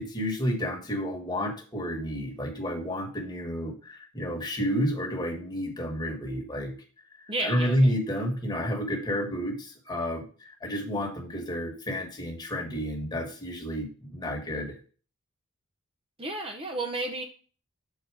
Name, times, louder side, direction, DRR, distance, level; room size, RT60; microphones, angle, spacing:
voice 1, 0.0-6.7 7.2-14.8, equal, 20° left, 1 dB, 1.5 m, -30 dB
voice 2, 7.3-7.9 16.2-17.2, right 2 dB, 25° right, 3 dB, 0.7 m, -32 dB
6.6 x 4.2 x 4.8 m, 0.40 s
head